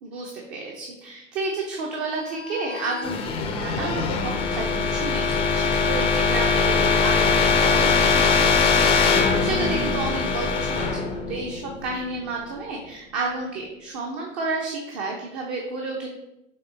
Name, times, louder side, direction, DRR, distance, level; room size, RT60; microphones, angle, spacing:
voice 1, 0.0-16.1, right 3 dB, 35° right, 0 dB, 1.0 m, -31 dB
sound 1, 2.3-12.1, left 4 dB, 15° left, 0.7 m, -22 dB
6.9 x 3.4 x 5.2 m, 0.90 s
figure-of-eight pair, 100°, 37 cm